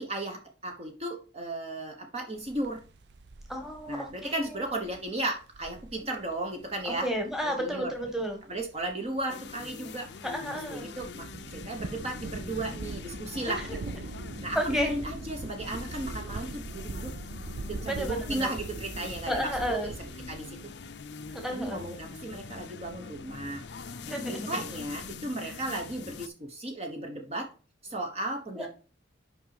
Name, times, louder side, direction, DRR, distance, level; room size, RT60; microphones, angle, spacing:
voice 1, 0.0-2.8 3.9-7.1 7.4-7.9 8.5-10.1 10.7-13.8 14.4-17.1 17.6-19.9 20.3-20.6 21.5-23.6 24.1-27.5 27.8-28.7, right 1 dB, 35° right, 3 dB, 1.1 m, -35 dB
sound 1, 2.4-20.4, right 3 dB, 75° right, 0.6 m, -42 dB
voice 2, 3.5-4.8 6.8-8.4 10.2-10.9 13.4-13.8 14.5-15.0 17.8-18.5 19.3-19.9 21.3-21.8 24.1-24.5 25.4-25.6 28.5-28.7, equal, ahead, 3 dB, 1.5 m, -32 dB
Motocross dirt bike motorcycle sound effects, 9.3-26.3, left 5 dB, 75° left, 0.6 m, -44 dB
5.9 x 5.1 x 5.8 m, 0.36 s
head